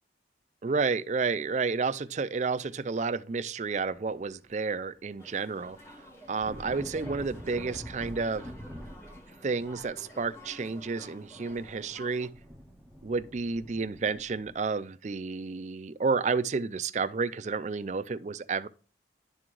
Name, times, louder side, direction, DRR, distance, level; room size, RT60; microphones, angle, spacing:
voice 1, 0.6-5.8 6.3-8.5 9.4-12.3 13.0-18.7, right 4 dB, 40° right, 0.4 m, -31 dB
sound 1, 3.9-4.7 5.0-14.5, equal, ahead, 0.6 m, -47 dB
sound 2, 5.2-12.3, left 1 dB, 15° left, 1.3 m, -51 dB
10.5 x 3.8 x 4.5 m
head